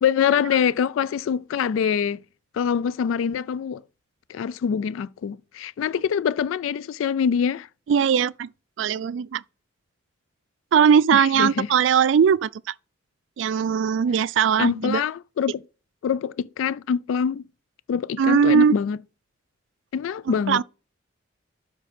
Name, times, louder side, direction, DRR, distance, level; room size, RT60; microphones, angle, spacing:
voice 1, 0.0-2.2 2.5-3.8 4.3-7.7 11.1-11.7 14.6-15.6 16.0-17.4 17.9-19.0 19.9-20.6, left 7 dB, 90° left, 0.3 m, -24 dB
voice 2, 7.9-8.5 8.8-9.4 10.7-12.5 13.4-15.0 18.2-18.8 20.5-20.6, right 7 dB, 75° right, 0.3 m, -19 dB
12.0 x 4.7 x 4.2 m
head